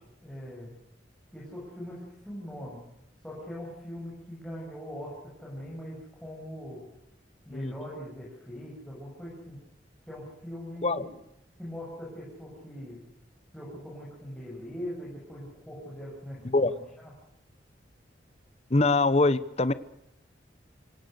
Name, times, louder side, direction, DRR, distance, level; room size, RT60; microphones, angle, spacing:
voice 1, 0.2-0.7 1.3-2.8 3.2-6.8 7.4-9.6 10.1-11.1 11.6-13.0 13.5-17.1, equal, 5° left, -6 dB, 7.4 m, -41 dB
voice 2, 18.7-19.7, left 2 dB, 35° left, 15 dB, 1.0 m, -23 dB
27.5 x 18.0 x 6.7 m, 0.84 s
head